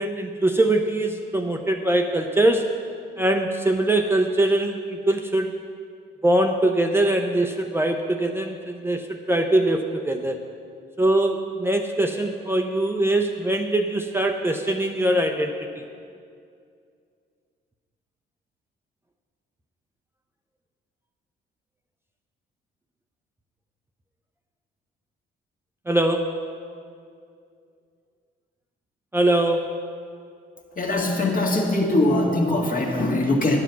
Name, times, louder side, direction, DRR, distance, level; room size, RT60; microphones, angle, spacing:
voice 1, 0.0-2.7 3.2-5.6 6.2-10.4 11.0-15.8 25.9-26.5 29.1-29.7, right 1 dB, 10° right, 3 dB, 0.6 m, -22 dB
voice 2, 30.7-33.6, left 2 dB, 45° left, 0 dB, 1.7 m, -22 dB
11.0 x 7.2 x 5.8 m, 2.3 s
cardioid pair, 90°, 20 cm